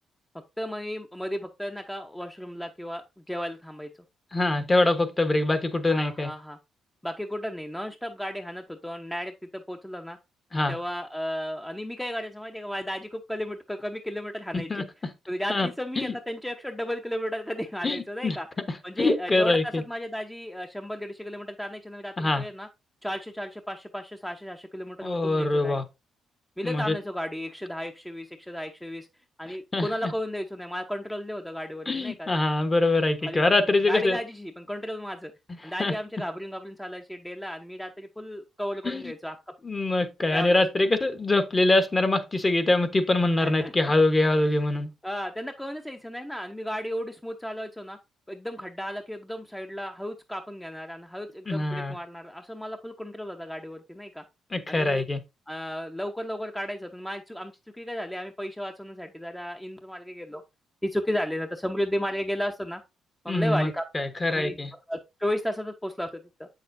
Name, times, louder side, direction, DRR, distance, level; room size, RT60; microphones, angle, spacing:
voice 1, 0.6-3.9 5.8-6.6 7.0-10.2 10.7-14.9 15.3-18.5 18.8-22.7 23.0-25.8 26.6-29.1 29.4-32.3 33.2-33.5 33.9-35.3 35.6-39.4 40.3-40.6 43.4-43.9 44.4-44.6 45.0-48.0 48.3-54.2 54.7-55.1 55.5-60.4 60.8-62.8 63.2-63.8 64.3-66.5, equal, 5° left, 0.7 m, -34 dB
voice 2, 4.3-6.3 10.5-10.7 14.7-14.8 15.5-15.7 16.0-16.1 17.8-18.4 19.0-19.8 22.2-22.4 25.0-25.8 26.6-26.9 29.7-30.1 31.9-34.2 35.8-35.9 38.8-39.0 39.6-44.9 51.5-51.9 54.5-55.2 63.3-64.7, left 2 dB, 25° left, 1.1 m, -24 dB
7.8 x 6.5 x 2.6 m
cardioid pair, 90°, 0 cm